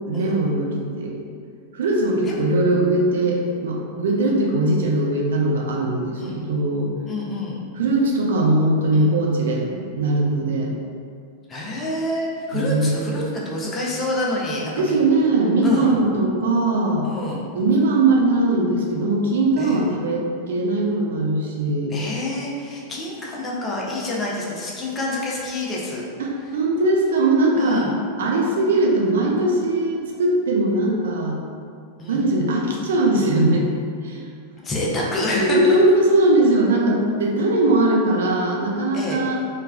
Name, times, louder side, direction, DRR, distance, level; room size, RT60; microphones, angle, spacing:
voice 1, 0.1-1.2 1.7-6.9 7.7-10.7 12.5-13.0 14.8-17.1 17.5-21.9 26.2-27.8 28.2-31.4 32.1-33.7 34.0-34.3 35.2-39.4, right 2 dB, 60° right, -1 dB, 0.4 m, -20 dB
voice 2, 7.1-7.6 8.9-9.1 11.5-15.0 15.6-15.9 17.0-17.5 19.6-19.8 21.9-26.0 27.6-27.9 32.0-32.2 34.6-35.8 38.9-39.2, left 1 dB, 20° left, -4 dB, 0.5 m, -27 dB
3.2 x 2.1 x 2.2 m, 2.2 s
figure-of-eight pair, 90°, 0 cm